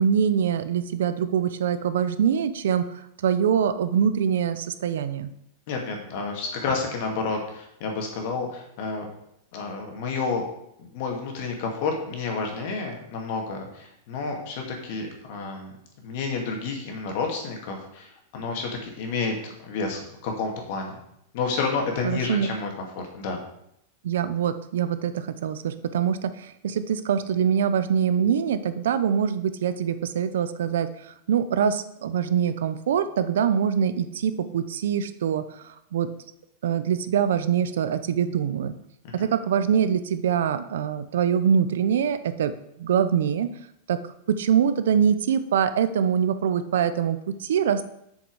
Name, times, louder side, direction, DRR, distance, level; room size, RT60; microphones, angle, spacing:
voice 1, 0.0-5.3 22.0-22.5 24.0-36.1 36.6-38.7 39.1-42.5 42.8-43.5 43.9-44.0 44.3-47.9, right 8 dB, 85° right, 12 dB, 0.7 m, -24 dB
voice 2, 5.7-9.1 9.5-10.4 10.8-15.7 16.0-21.0 21.3-22.8 23.1-23.4 39.0-39.3, left 4 dB, 45° left, 2 dB, 2.2 m, -30 dB
7.8 x 6.6 x 4.8 m, 0.77 s
supercardioid pair, 170°, 0 cm